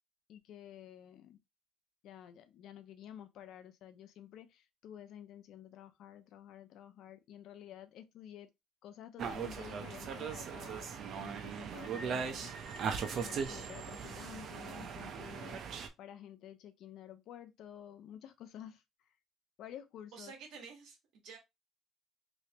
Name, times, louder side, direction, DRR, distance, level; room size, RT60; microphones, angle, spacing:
voice 1, 0.3-1.4 2.0-8.5 8.8-10.9 11.2-12.5 13.1-18.8 19.6-20.3, left 10 dB, 65° left, 0.6 m, -51 dB
sound 1, 9.2-15.9, right 6 dB, 50° right, 0.6 m, -39 dB
voice 2, 20.1-21.4, right 5 dB, 70° right, 1.4 m, -50 dB
3.3 x 3.2 x 2.9 m
cardioid pair, 155°, 0 cm